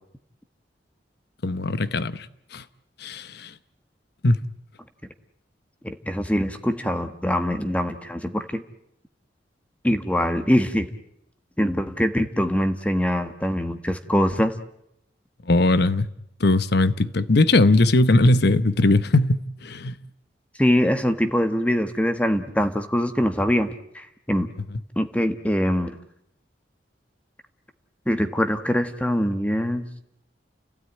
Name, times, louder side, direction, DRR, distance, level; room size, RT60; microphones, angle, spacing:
voice 1, 1.4-2.3 2.5-2.6 3.0-3.5 4.2-4.4 15.5-16.1 16.4-19.9, left 2 dB, 65° left, 1.0 m, -19 dB
voice 2, 5.8-8.6 9.8-10.9 11.6-14.5 20.6-24.5 25.0-26.0 28.1-29.9, equal, 10° left, 1.3 m, -23 dB
30.0 x 16.0 x 9.3 m
head